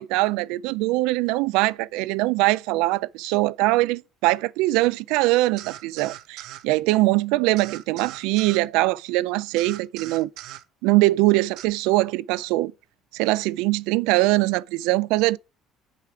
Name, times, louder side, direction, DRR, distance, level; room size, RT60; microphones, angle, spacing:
voice 1, 0.0-10.3 10.8-12.7 13.1-15.4, right 19 dB, 90° right, 0.3 m, -22 dB
sound 1, 5.6-6.6 7.6-8.6 9.6-10.6 11.6-11.7, right 13 dB, 60° right, 0.7 m, -40 dB
6.5 x 4.9 x 6.8 m
cardioid pair, 160°, 0 cm